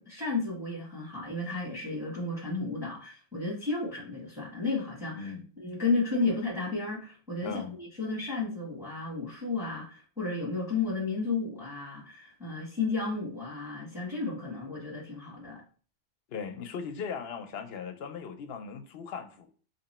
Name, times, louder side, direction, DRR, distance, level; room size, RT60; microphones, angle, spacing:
voice 1, 0.0-5.3 5.6-15.6, left 3 dB, 5° right, 1.4 m, -33 dB
voice 2, 5.1-5.5 6.1-6.3 7.4-7.8 16.3-19.5, left 6 dB, 65° left, 0.8 m, -38 dB
2.9 x 2.9 x 4.1 m
omnidirectional pair, 1.2 m